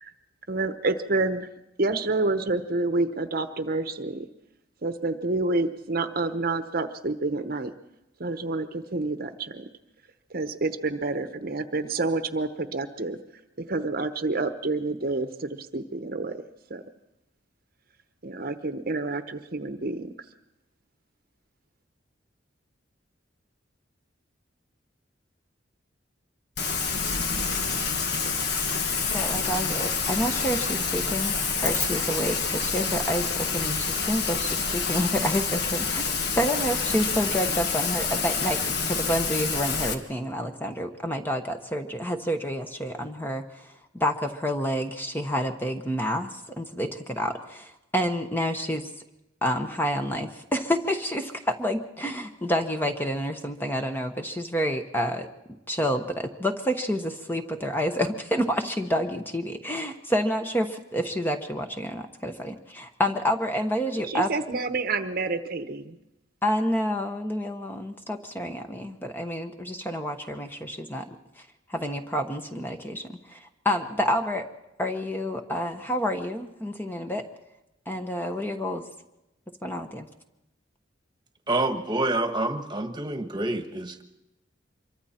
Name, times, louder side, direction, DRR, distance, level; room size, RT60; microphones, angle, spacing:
voice 1, 0.5-1.5 1.8-4.3 4.8-7.7 8.2-9.6 10.3-13.2 13.6-16.4 16.7-16.8 18.2-20.1 64.1-66.0, right 3 dB, 50° right, 9 dB, 1.0 m, -28 dB
Rain, 26.6-39.9, left 5 dB, 60° left, 1.6 m, -27 dB
voice 2, 29.1-31.4 31.6-38.6 38.9-43.7 43.9-48.9 49.4-55.3 55.7-64.3 66.4-71.2 71.7-74.4 74.8-77.2 77.9-78.8 79.6-80.1, equal, 10° left, 5 dB, 1.2 m, -29 dB
voice 3, 81.5-84.0, right 2 dB, 25° right, 7 dB, 1.5 m, -27 dB
25.5 x 23.5 x 4.4 m, 0.92 s
head